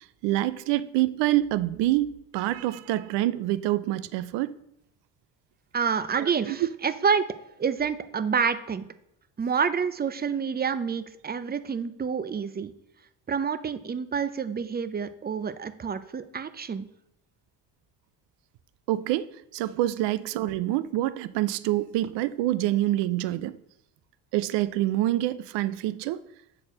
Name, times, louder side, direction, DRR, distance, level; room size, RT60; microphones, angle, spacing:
voice 1, 0.2-2.1 2.3-4.5 6.1-6.6 18.9-23.5 24.3-26.2, right 15 dB, 80° right, 0.6 m, -26 dB
voice 2, 5.7-7.3 7.6-8.8 9.4-12.7 13.3-16.9, right 6 dB, 25° right, 0.6 m, -28 dB
6.4 x 4.3 x 6.3 m
supercardioid pair, 65°, 42 cm